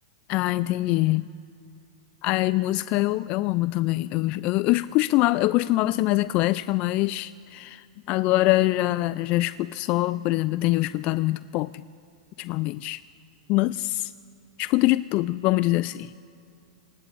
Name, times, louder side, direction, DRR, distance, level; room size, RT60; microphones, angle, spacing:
voice 1, 0.3-1.2 2.2-11.7 12.4-13.0 13.5-14.1 14.6-16.1, left 18 dB, 40° left, 16 dB, 0.3 m, -24 dB
27.0 x 20.5 x 2.6 m, 2.6 s
hypercardioid pair, 115°, 3 cm